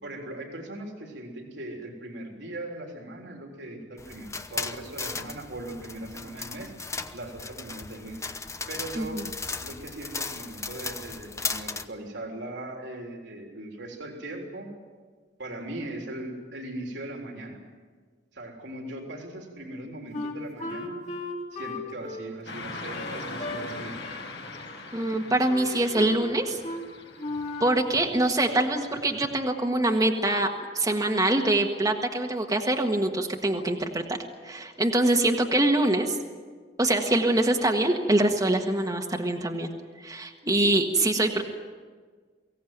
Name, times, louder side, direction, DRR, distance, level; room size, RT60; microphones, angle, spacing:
voice 1, 0.0-6.7 7.1-8.2 8.7-9.2 9.6-14.7 15.4-17.6 18.3-21.0 21.5-24.0, right 1 dB, 80° right, 1 dB, 3.6 m, -39 dB
sound 1, 4.0-11.8, left 4 dB, 15° left, 0.9 m, -36 dB
Wind instrument woodwind instrument, 20.1-23.6 24.0-24.3 24.5-25.2 25.5-26.2 26.6-26.9 27.2-27.9, left 2 dB, 45° left, 3.4 m, -36 dB
Car passing by / Traffic noise roadway noise, 22.5-29.3, left 2 dB, 75° left, 4.8 m, -41 dB
voice 2, 24.9-26.6 27.6-30.5 30.7-34.2 34.4-36.2 36.8-39.7 40.0-41.4, right 1 dB, 20° right, 2 dB, 1.5 m, -24 dB
23.5 x 17.0 x 9.4 m, 1.5 s
head